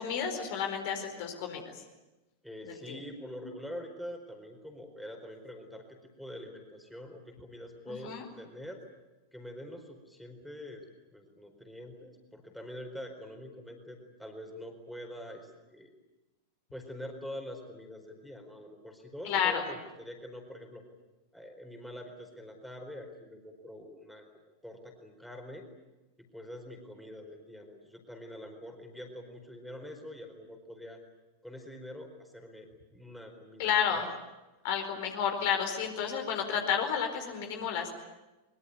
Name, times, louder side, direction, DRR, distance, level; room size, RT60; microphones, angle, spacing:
voice 1, 0.0-1.8 2.9-3.0 7.9-8.3 19.2-19.6 33.6-34.1 34.6-38.0, left 8 dB, 50° left, 4 dB, 4.5 m, -31 dB
voice 2, 2.4-8.8 9.3-10.8 11.1-15.9 16.7-20.8 21.3-24.2 24.6-25.7 26.2-31.0 31.4-34.0, left 1 dB, ahead, 3 dB, 4.5 m, -45 dB
23.5 x 23.0 x 9.5 m, 1.1 s
figure-of-eight pair, 90°, 0 cm